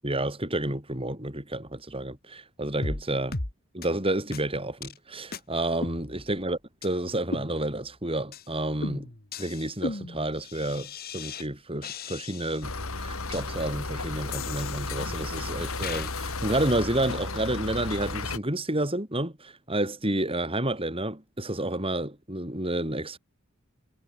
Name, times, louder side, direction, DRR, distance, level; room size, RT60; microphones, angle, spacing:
voice 1, 0.0-3.3 3.7-6.6 6.8-9.1 9.4-23.2, right 1 dB, 25° right, 7.0 m, -30 dB
sound 1, 2.8-3.0 3.3-3.5 3.8-3.9 4.3-4.4 4.8-5.0 5.3-5.4 5.8-6.5 6.8-6.9 7.3-7.9 8.3-8.5 8.8-11.5 11.8-12.7 13.3-13.4 14.3-15.3 15.8-16.1, left 3 dB, 45° left, 2.2 m, -37 dB
sound 2, 12.6-18.4, left 3 dB, 75° left, 3.1 m, -33 dB
head